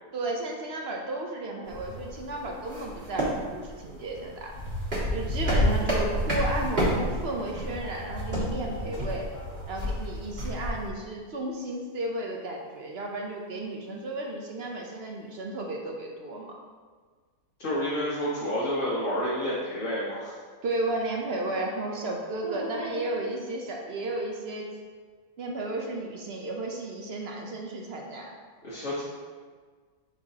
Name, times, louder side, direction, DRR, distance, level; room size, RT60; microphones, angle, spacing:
voice 1, 0.1-4.5 5.1-9.3 9.7-16.6 20.6-24.7 25.4-28.4, right 2 dB, 55° right, 0 dB, 0.8 m, -33 dB
sound 1, 1.7-10.9, equal, 35° right, 2.0 m, -30 dB
voice 2, 17.6-20.3 22.4-23.1 28.6-29.0, equal, 55° left, -9 dB, 1.5 m, -30 dB
7.3 x 4.7 x 2.8 m, 1.6 s
omnidirectional pair, 1.6 m